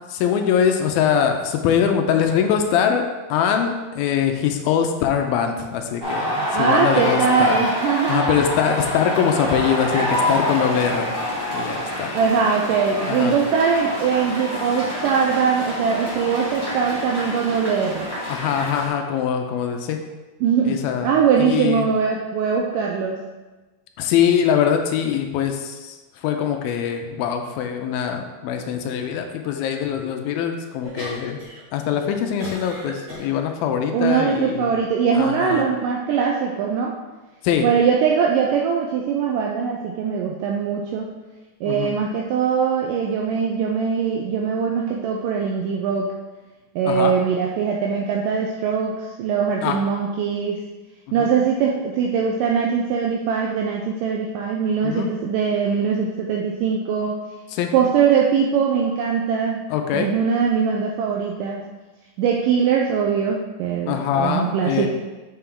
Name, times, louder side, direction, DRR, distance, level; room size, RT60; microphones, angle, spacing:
voice 1, 0.1-3.0 3.3-7.6 8.1-11.2 11.5-12.1 13.1-13.4 18.3-20.0 20.6-21.1 21.4-21.9 24.0-31.4 31.7-34.7 35.1-35.7 37.4-37.7 41.7-42.0 46.9-47.1 49.6-49.8 51.1-51.3 54.8-55.1 57.5-57.7 59.7-60.1 63.9-64.9, left 8 dB, 85° left, 5 dB, 2.4 m, -22 dB
sound 1, 6.0-18.9, left 1 dB, 20° right, 0.6 m, -27 dB
voice 2, 6.5-8.4 12.1-18.1 20.4-23.2 33.9-36.9 37.6-41.1 41.6-46.1 46.8-50.6 51.1-57.2 57.7-59.7 59.9-61.7 62.2-64.9, right 6 dB, 80° right, -1 dB, 2.0 m, -21 dB
sound 2, 30.8-31.6 31.9-33.3 33.9-34.6 35.3-35.7, equal, 45° right, 1.0 m, -35 dB
6.8 x 5.7 x 3.7 m, 1.2 s
omnidirectional pair, 4.3 m